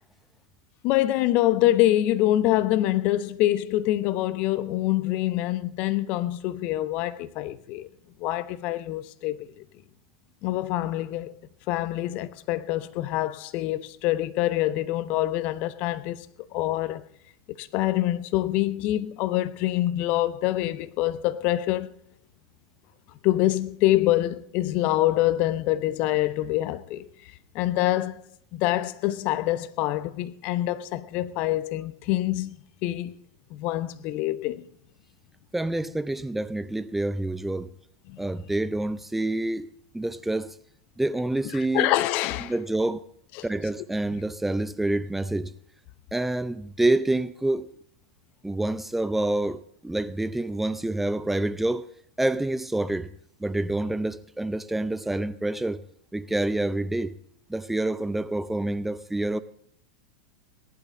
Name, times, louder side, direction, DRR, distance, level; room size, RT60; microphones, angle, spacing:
voice 1, 0.8-7.9 8.2-9.5 10.4-11.4 11.7-16.3 16.5-17.0 17.6-21.9 23.2-27.1 27.5-28.2 28.5-32.6 32.8-33.1 33.5-34.6 38.1-38.2 41.5-42.5 43.4-43.5, left 15 dB, 45° left, 0.9 m, -25 dB
voice 2, 35.5-37.7 38.2-40.5 41.0-41.9 42.4-43.0 43.4-45.5 46.1-47.7 48.4-51.9 52.2-53.1 53.4-55.8 56.1-57.1 57.5-59.4, right 2 dB, 5° right, 0.7 m, -27 dB
19.0 x 11.5 x 4.0 m
figure-of-eight pair, 85°, 4 cm